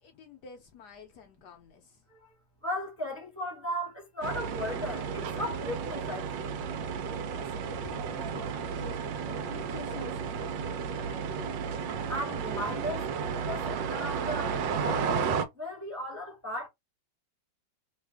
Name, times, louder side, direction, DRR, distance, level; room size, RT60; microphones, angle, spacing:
voice 1, 0.0-2.0 7.2-11.9, left 6 dB, 70° left, 1.1 m, -49 dB
voice 2, 2.6-6.6 12.1-15.1 15.5-16.7, left 1 dB, 10° right, 0.9 m, -36 dB
sound 1, 4.2-15.4, right 6 dB, 80° right, 1.3 m, -33 dB
3.2 x 2.3 x 3.3 m
omnidirectional pair, 2.0 m